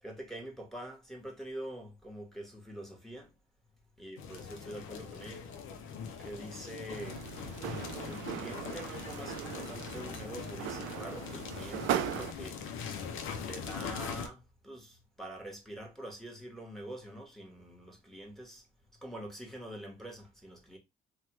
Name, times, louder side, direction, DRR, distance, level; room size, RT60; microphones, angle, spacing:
voice 1, 0.0-3.3 4.0-5.5 6.2-7.3 8.0-12.6 13.4-18.7 19.0-20.8, right 1 dB, ahead, 1.1 m, -45 dB
sound 1, 4.2-14.3, left 6 dB, 85° left, 0.5 m, -42 dB
sound 2, 6.9-12.3, right 12 dB, 90° right, 0.4 m, -38 dB
3.1 x 2.2 x 2.9 m
cardioid pair, 90°, 20 cm